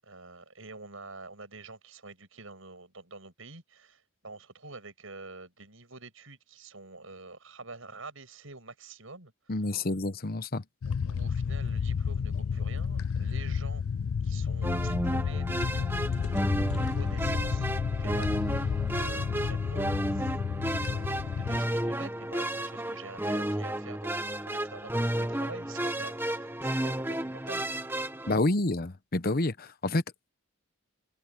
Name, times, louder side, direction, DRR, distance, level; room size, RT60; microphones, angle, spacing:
voice 1, 0.0-9.3 10.8-13.8 14.2-16.2 17.0-27.9, right 3 dB, 75° right, 7.4 m, -47 dB
voice 2, 9.5-10.6 28.3-30.0, left 2 dB, 45° left, 0.9 m, -28 dB
sound 1, 10.8-21.6, left 6 dB, 90° left, 0.4 m, -31 dB
sound 2, 14.6-28.3, right 1 dB, 10° right, 1.5 m, -32 dB
open air
head